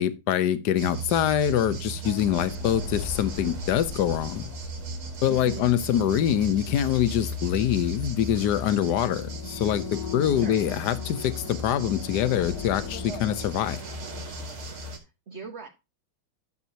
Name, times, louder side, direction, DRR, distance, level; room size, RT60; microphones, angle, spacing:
voice 1, 0.0-4.5 5.2-13.8, left 10 dB, 60° left, 1.3 m, -25 dB
sound 1, 0.8-15.0, right 1 dB, 80° right, 3.0 m, -36 dB
sound 2, 2.3-7.1 7.4-7.6 9.1-13.6, left 12 dB, 85° left, 0.8 m, -40 dB
voice 2, 5.3-5.7 10.3-10.6 15.0-15.7, right 5 dB, 40° right, 1.3 m, -40 dB
12.5 x 7.1 x 2.8 m
omnidirectional pair, 2.3 m